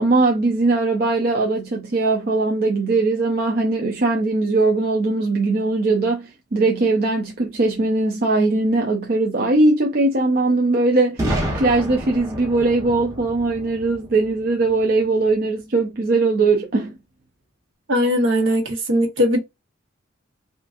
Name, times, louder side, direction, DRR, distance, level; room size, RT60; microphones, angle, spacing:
voice 1, 0.0-16.9, right 3 dB, 50° right, 0.5 m, -20 dB
Boom, 11.2-15.0, right 1 dB, 15° right, 0.8 m, -29 dB
voice 2, 17.9-19.4, equal, 70° right, 1.1 m, -19 dB
3.7 x 2.6 x 2.4 m
head